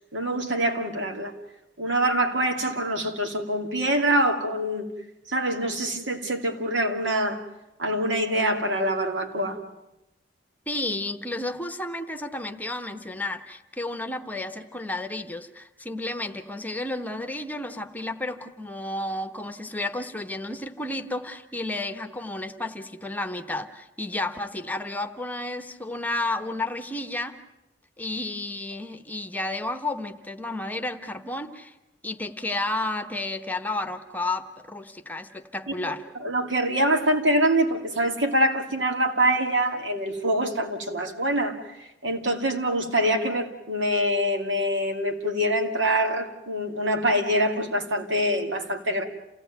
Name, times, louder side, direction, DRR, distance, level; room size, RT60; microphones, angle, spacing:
voice 1, 0.1-1.3 1.8-4.9 5.3-7.4 7.8-9.6 35.8-35.9 36.2-41.6 42.0-49.0, right 1 dB, 85° right, 4 dB, 2.7 m, -25 dB
voice 2, 10.7-27.4 28.0-31.7 32.0-36.0, left 2 dB, 10° left, 8 dB, 1.0 m, -32 dB
28.5 x 17.0 x 9.3 m, 0.94 s
head